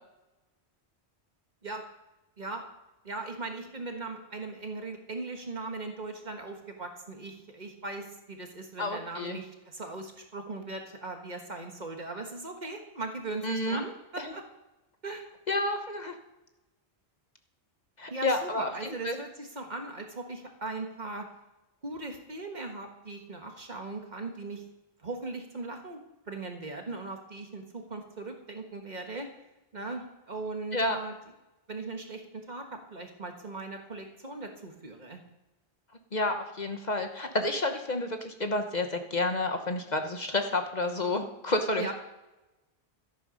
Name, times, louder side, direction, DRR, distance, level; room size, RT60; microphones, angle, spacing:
voice 1, 3.0-14.4 15.0-15.2 18.1-21.3 21.8-24.6 25.0-29.3 29.7-31.1 31.7-35.2 41.8-41.9, right 3 dB, 45° right, 4 dB, 1.6 m, -39 dB
voice 2, 8.8-9.4 13.4-13.8 14.2-14.3 15.5-16.1 18.0-18.7 19.0-19.2 30.7-31.0 36.1-41.9, left 2 dB, 45° left, 6 dB, 1.1 m, -30 dB
13.0 x 10.5 x 5.3 m, 1.0 s
omnidirectional pair, 1.1 m